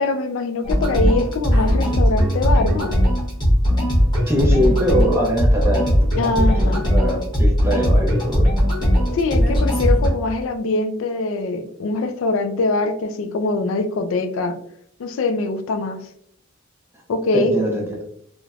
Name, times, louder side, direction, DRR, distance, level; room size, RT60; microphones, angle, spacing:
voice 1, 0.0-3.0 6.1-6.8 9.1-14.6 15.0-16.1 17.1-17.8, left 3 dB, 70° left, 8 dB, 0.3 m, -23 dB
sound 1, 0.6-10.1, equal, 20° left, 0.9 m, -18 dB
voice 2, 4.3-8.5 17.3-18.0, equal, 10° right, -1 dB, 0.5 m, -23 dB
3.2 x 2.1 x 2.3 m, 0.68 s
head